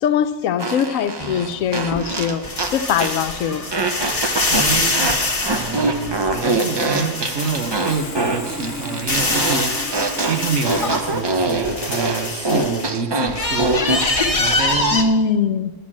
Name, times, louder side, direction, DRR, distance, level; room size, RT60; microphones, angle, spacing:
voice 1, 0.0-2.4 2.7-3.6 12.5-12.6 14.9-15.7, left 6 dB, 70° left, 11 dB, 1.0 m, -21 dB
Fart, 0.6-3.3 3.7-14.1, right 2 dB, 35° right, 0.4 m, -24 dB
sound 1, 1.2-8.1 8.5-12.9 13.3-15.0, left 2 dB, 25° left, 1.2 m, -24 dB
voice 2, 4.5-5.1 5.5-9.7 10.3-13.7 14.4-15.0, right 5 dB, 60° right, 9 dB, 1.2 m, -27 dB
Sawing, 7.4-10.9, left 2 dB, 45° left, 1.2 m, -33 dB
11.5 x 6.8 x 7.4 m, 1.2 s
omnidirectional pair, 1.5 m